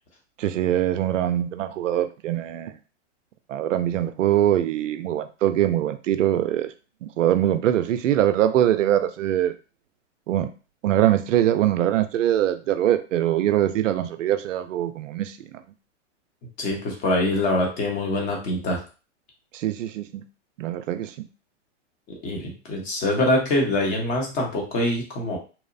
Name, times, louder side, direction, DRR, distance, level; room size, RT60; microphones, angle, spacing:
voice 1, 0.4-2.8 3.5-6.7 7.0-9.5 10.3-10.5 10.8-15.4 19.5-20.2 20.6-21.3, right 12 dB, 90° right, 11 dB, 0.5 m, -23 dB
voice 2, 16.6-18.8 22.1-25.4, left 1 dB, 25° left, 0 dB, 0.7 m, -24 dB
2.9 x 2.0 x 2.5 m, 0.34 s
hypercardioid pair, 145°, 36 cm